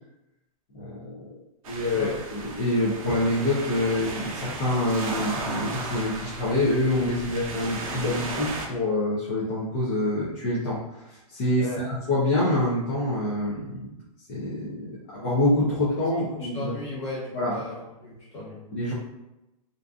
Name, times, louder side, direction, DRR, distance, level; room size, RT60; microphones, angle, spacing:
voice 1, 0.7-1.4 1.7-10.8 11.1-13.9 14.3-16.7 17.3-17.6 18.7-18.9, left 1 dB, 25° left, -9 dB, 0.5 m, -26 dB
sound 1, 1.6-8.7, right 3 dB, 70° right, 0.6 m, -35 dB
voice 2, 16.3-18.6, left 2 dB, 45° left, -6 dB, 1.3 m, -36 dB
2.6 x 2.4 x 2.3 m, 0.94 s
supercardioid pair, 175°, 19 cm